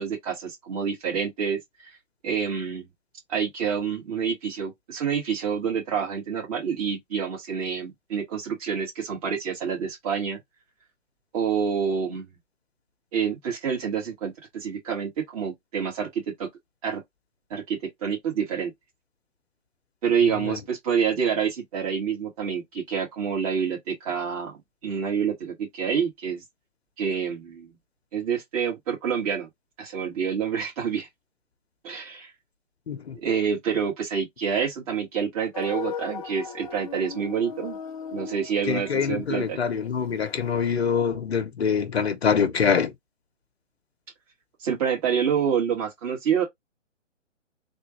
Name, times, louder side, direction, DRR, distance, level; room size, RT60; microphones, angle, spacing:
voice 1, 0.0-1.6 2.2-2.9 3.3-10.4 11.3-12.2 13.1-16.1 16.8-17.0 17.5-18.7 20.0-26.4 27.0-27.8 28.1-29.5 29.8-31.1 31.8-32.3 33.2-37.8 38.1-39.6 44.6-46.4, right 7 dB, 30° right, 2.2 m, -27 dB
sound 1, 35.5-40.4, left 6 dB, 30° left, 0.5 m, -38 dB
voice 2, 38.7-42.9, left 6 dB, 60° left, 0.9 m, -25 dB
3.5 x 2.6 x 3.1 m
figure-of-eight pair, 135°, 37 cm